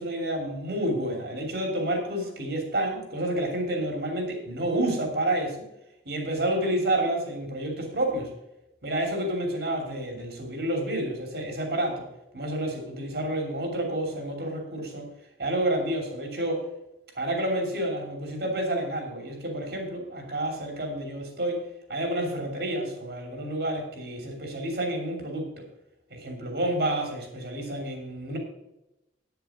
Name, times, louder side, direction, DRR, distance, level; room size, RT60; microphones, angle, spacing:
voice 1, 0.0-5.6 6.0-8.3 8.8-12.1 12.3-15.1 15.4-16.6 17.2-21.6 21.9-25.6 26.1-28.4, right 1 dB, 60° right, 3 dB, 2.9 m, -29 dB
9.9 x 7.0 x 6.2 m, 0.88 s
head